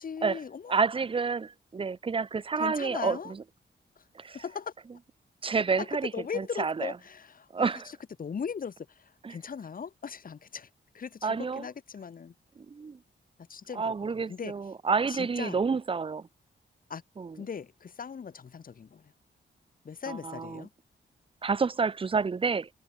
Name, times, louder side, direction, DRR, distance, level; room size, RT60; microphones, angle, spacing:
voice 1, 0.0-0.8 2.6-3.3 4.0-4.1 4.3-4.7 5.8-5.9 6.1-10.7 10.9-12.3 13.4-13.9 14.3-14.5 15.1-15.6 16.9-17.0 17.3-19.1 19.8-20.7, left 6 dB, 45° left, 1.0 m, -39 dB
voice 2, 0.7-3.2 4.2-4.4 5.4-6.1 6.4-6.9 7.5-7.9 9.2-9.4 11.2-11.6 12.7-13.0 13.8-16.3 17.2-17.4 20.1-20.6 21.4-22.7, right 5 dB, 25° right, 0.6 m, -29 dB
wide cardioid pair, 125°, 20 cm